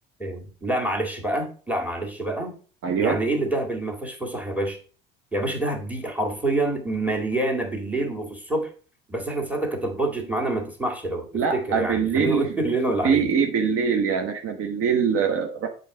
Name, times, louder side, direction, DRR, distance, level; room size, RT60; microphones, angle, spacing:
voice 1, 0.2-2.6 3.0-4.8 5.3-8.7 9.1-11.3 11.5-13.3, right 2 dB, 5° right, 2 dB, 2.1 m, -27 dB
voice 2, 2.8-3.2 11.3-12.5 13.0-15.7, right 6 dB, 45° right, 4 dB, 1.0 m, -23 dB
7.4 x 4.1 x 4.8 m, 0.40 s
hypercardioid pair, 65°, 30 cm